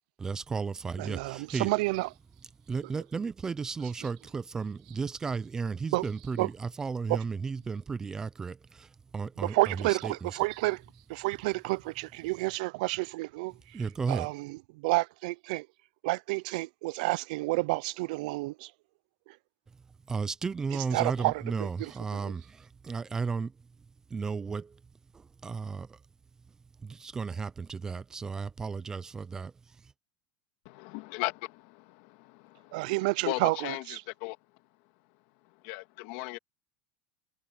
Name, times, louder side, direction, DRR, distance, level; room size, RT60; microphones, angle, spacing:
voice 1, 0.2-1.7 2.7-10.4 13.7-14.3 20.1-23.6 24.1-24.8 25.1-26.0 26.8-29.9, right 5 dB, 15° right, 0.5 m, -34 dB
voice 2, 1.0-2.1 5.9-6.0 6.4-6.5 7.1-7.2 9.4-10.8 11.1-13.8 14.1-15.7 16.0-18.7 20.9-21.3 21.8-22.3 32.7-34.0, right 23 dB, 70° right, 0.4 m, -30 dB
voice 3, 30.7-32.9 33.2-34.4 35.4-36.4, left 21 dB, 60° left, 2.0 m, -37 dB
supercardioid pair, 165°, 5 cm